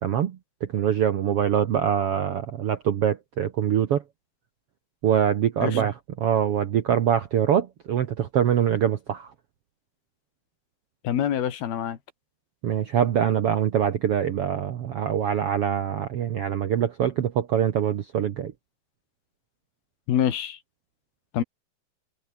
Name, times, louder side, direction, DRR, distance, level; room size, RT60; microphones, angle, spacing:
voice 1, 0.0-4.0 5.0-9.3 12.6-18.5, right 9 dB, 70° right, 1.4 m, -24 dB
voice 2, 11.0-12.0 20.1-20.6 21.3-21.4, left 10 dB, 85° left, 4.2 m, -25 dB
omnidirectional pair, 4.3 m